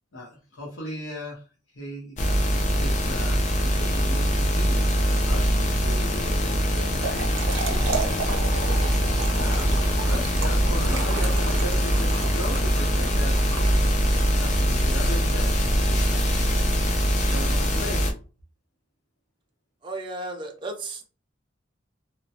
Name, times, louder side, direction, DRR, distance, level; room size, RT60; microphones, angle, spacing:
voice 1, 0.1-1.4 1.7-2.2 2.7-9.0 9.3-14.0 14.3-15.5 15.8-16.7 17.1-18.0, left 1 dB, 90° left, -4 dB, 0.9 m, -38 dB
sound 1, 2.2-18.1, equal, 40° left, 0.5 m, -23 dB
Trickle dribble / Fill (with liquid), 6.8-14.2, right 5 dB, 85° right, 0.6 m, -34 dB
voice 2, 19.8-21.1, right 2 dB, 25° right, 2 dB, 0.4 m, -34 dB
2.9 x 2.1 x 2.8 m, 0.35 s
head